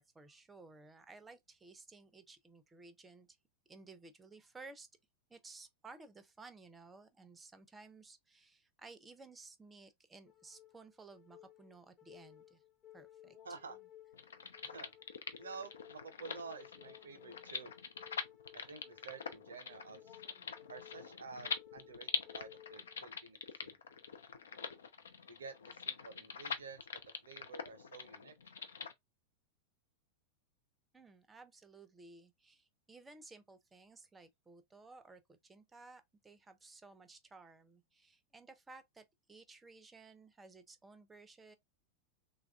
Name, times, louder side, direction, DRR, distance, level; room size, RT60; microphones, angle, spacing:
voice 1, 0.0-3.3 3.7-4.9 5.3-12.6 12.9-13.4 30.9-41.6, right 3 dB, 15° right, 0.5 m, -56 dB
sound 1, 10.3-23.2, left 12 dB, 35° left, 1.0 m, -59 dB
voice 2, 13.4-13.8 14.6-14.9 15.4-17.7 18.5-20.2 20.7-23.8 25.3-26.9 27.2-28.3, right 5 dB, 70° right, 0.6 m, -50 dB
sound 2, 14.1-28.9, left 6 dB, 65° left, 0.4 m, -44 dB
3.3 x 2.3 x 2.2 m
figure-of-eight pair, 90°, 0 cm